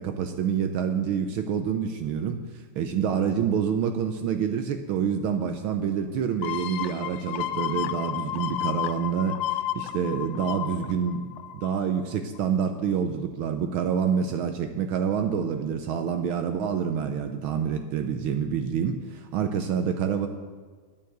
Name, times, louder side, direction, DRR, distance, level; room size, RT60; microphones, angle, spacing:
voice 1, 0.0-2.4 2.8-20.3, right 7 dB, 75° right, 7 dB, 1.5 m, -27 dB
sound 1, 6.4-11.9 12.3-12.4, left 12 dB, 70° left, 1.2 m, -32 dB
9.4 x 9.2 x 7.8 m, 1.5 s
omnidirectional pair, 2.4 m